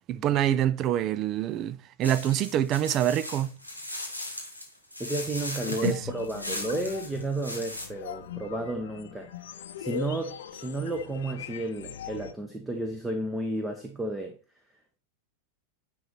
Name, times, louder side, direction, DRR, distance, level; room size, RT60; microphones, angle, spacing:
voice 1, 0.1-3.6 5.8-6.0, right 11 dB, 35° right, 0.5 m, -26 dB
sound 1, 2.0-7.9, left 1 dB, 90° right, 2.3 m, -38 dB
voice 2, 5.0-9.3 9.8-14.4, right 2 dB, 10° right, 1.0 m, -32 dB
sound 2, 5.6-12.3, left 8 dB, 60° left, 0.7 m, -39 dB
10.5 x 3.9 x 4.3 m
figure-of-eight pair, 90°, 0 cm